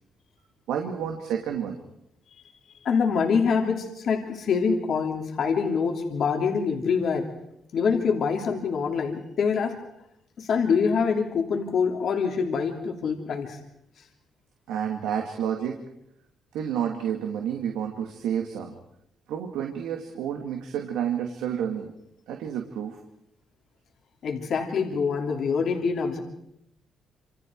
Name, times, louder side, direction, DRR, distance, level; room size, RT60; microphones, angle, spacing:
voice 1, 0.7-1.8 14.7-15.8 16.5-18.8 19.3-21.9 22.3-23.0, right 8 dB, 90° right, 3 dB, 2.2 m, -30 dB
voice 2, 2.8-7.3 7.7-9.8 10.4-13.6 24.2-26.2, left 5 dB, 65° left, 2 dB, 3.1 m, -25 dB
27.0 x 27.0 x 4.7 m, 0.77 s
cardioid pair, 90°, 0 cm